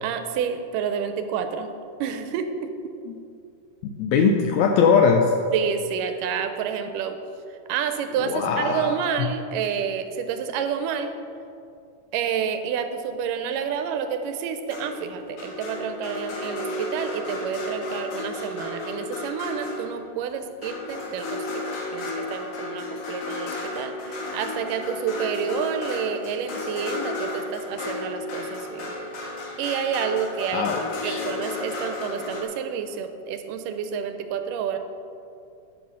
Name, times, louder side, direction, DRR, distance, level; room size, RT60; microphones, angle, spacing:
voice 1, 0.0-1.7 2.0-2.9 5.5-7.2 7.5-11.1 12.1-28.9 29.6-30.7 31.0-34.8, right 7 dB, 90° right, 8 dB, 2.3 m, -29 dB
voice 2, 3.8-5.3 8.2-8.9 9.2-9.3 30.5-31.2, left 5 dB, 85° left, 4 dB, 1.6 m, -21 dB
sound 1, 14.7-20.1 20.6-32.4, left 2 dB, 65° left, 2.8 m, -33 dB
10.5 x 5.6 x 6.5 m, 2.5 s
omnidirectional pair, 3.8 m